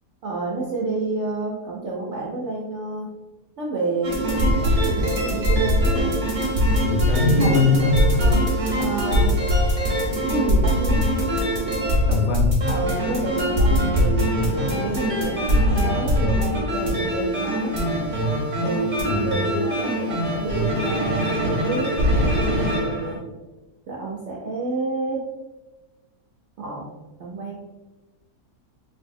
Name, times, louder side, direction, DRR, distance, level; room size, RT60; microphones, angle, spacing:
voice 1, 0.2-3.1 3.6-6.1 7.3-7.5 8.1-9.4 10.3-11.1 12.6-17.8 18.6-23.2 23.9-25.3 26.6-27.6, right 3 dB, 65° right, -3 dB, 0.7 m, -29 dB
sound 1, 4.0-23.2, equal, 35° right, 0.8 m, -22 dB
voice 2, 6.9-7.9 12.1-12.5 19.0-19.4, left 3 dB, 70° left, -1 dB, 1.3 m, -21 dB
4.2 x 2.6 x 2.6 m, 1.1 s
omnidirectional pair, 1.8 m